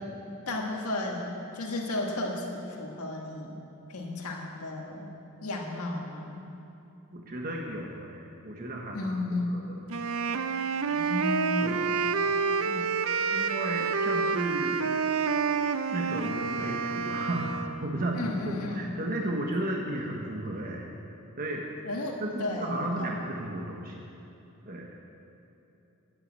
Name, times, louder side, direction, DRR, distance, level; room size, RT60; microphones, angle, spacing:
voice 1, 0.5-3.6 3.9-5.1 5.4-6.4 8.9-9.7 10.9-12.0 18.1-19.0 21.8-23.1, left 2 dB, 85° left, 0 dB, 1.8 m, -33 dB
voice 2, 7.1-9.2 9.5-9.8 11.6-11.9 12.6-12.9 13.3-14.8 15.9-20.9 21.4-21.7 22.2-24.0 24.7-25.0, right 1 dB, 40° right, 0 dB, 1.2 m, -34 dB
Wind instrument woodwind instrument, 9.9-17.8, right 5 dB, 65° right, 0.6 m, -28 dB
14.0 x 8.5 x 8.9 m, 2.9 s
head